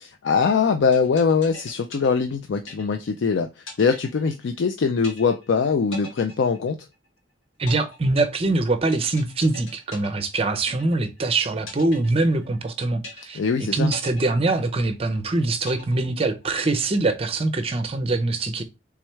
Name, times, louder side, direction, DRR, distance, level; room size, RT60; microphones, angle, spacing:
voice 1, 0.0-3.5 3.8-6.8 13.4-13.9, left 5 dB, 65° left, 0.4 m, -22 dB
sound 1, 0.9-3.2 3.7-4.7 5.0-5.6 5.9-7.2 7.7-11.2 11.7-12.7 13.0-13.6 13.9-15.2 15.7-16.7, left 1 dB, 80° left, 1.9 m, -41 dB
voice 2, 7.6-13.4 13.7-18.6, right 2 dB, 30° right, 0.5 m, -23 dB
3.5 x 3.2 x 4.4 m
head